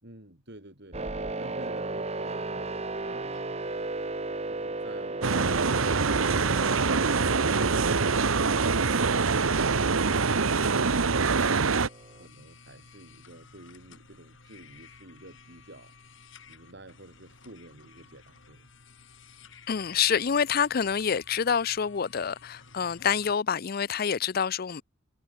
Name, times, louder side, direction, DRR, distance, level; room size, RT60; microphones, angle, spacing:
voice 1, 0.0-3.6 10.5-16.0 16.5-18.7, right 1 dB, 55° right, 4.3 m, -50 dB
sound 1, 0.9-12.3, right 2 dB, 30° right, 1.2 m, -36 dB
sound 2, 5.2-11.9, right 4 dB, 80° right, 1.1 m, -24 dB
sound 3, 9.6-23.4, left 4 dB, 65° left, 6.3 m, -54 dB
voice 2, 19.7-24.8, left 7 dB, 45° left, 0.5 m, -27 dB
head